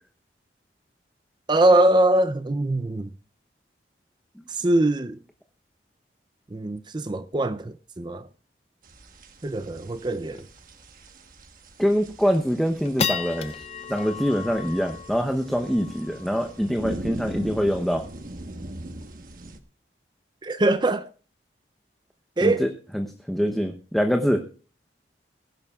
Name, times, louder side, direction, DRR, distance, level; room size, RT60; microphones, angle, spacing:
voice 1, 1.5-3.1 4.5-5.2 6.5-8.3 9.4-10.4 20.4-21.1 22.4-22.6, right 1 dB, 25° right, 0.5 m, -22 dB
sound 1, 8.8-19.6, right 1 dB, 50° right, 1.2 m, -41 dB
sound 2, 9.5-9.6 9.9-10.0 10.3-10.6 11.1-11.2 11.7-12.1 12.5-19.1, left 7 dB, 35° left, 0.5 m, -35 dB
voice 2, 11.8-13.6 13.9-18.0 22.4-22.7 22.9-24.4, equal, ahead, 0.9 m, -24 dB
22.0 x 11.5 x 2.4 m
head